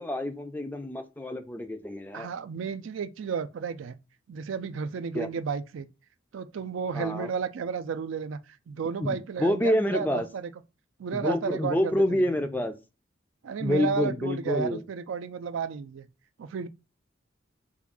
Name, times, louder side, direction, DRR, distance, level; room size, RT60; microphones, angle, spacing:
voice 1, 0.0-2.3 5.1-5.3 6.9-7.3 9.0-10.3 11.1-12.7 13.6-14.8, left 1 dB, 10° left, 0.3 m, -28 dB
voice 2, 2.1-4.0 4.3-5.9 6.3-10.5 11.0-12.2 13.4-16.1 16.4-16.7, right 6 dB, 85° right, 0.4 m, -32 dB
3.5 x 2.3 x 3.6 m
head